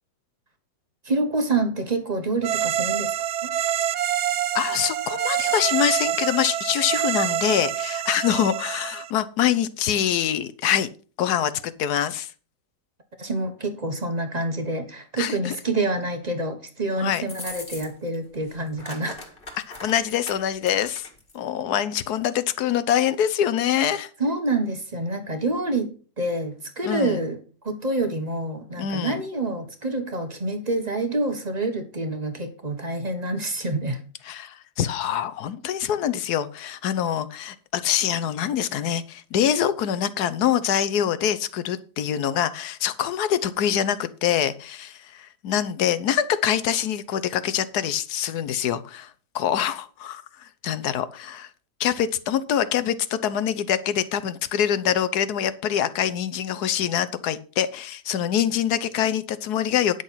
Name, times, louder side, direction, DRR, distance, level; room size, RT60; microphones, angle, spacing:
voice 1, 1.0-3.1 3.4-3.5 13.2-19.3 24.2-27.4 27.6-34.0, right 2 dB, 25° right, 1.2 m, -27 dB
sound 1, 2.4-9.1, right 10 dB, 80° right, 0.6 m, -26 dB
voice 2, 4.5-10.9 11.2-12.3 15.2-15.6 17.0-17.2 19.8-21.1 21.3-24.1 26.8-27.2 28.8-29.2 34.2-51.5 51.8-60.0, left 10 dB, 65° left, 1.2 m, -25 dB
sound 2, 17.2-18.2 18.4-21.4, left 2 dB, 30° left, 2.1 m, -40 dB
10.0 x 6.5 x 5.6 m
omnidirectional pair, 1.9 m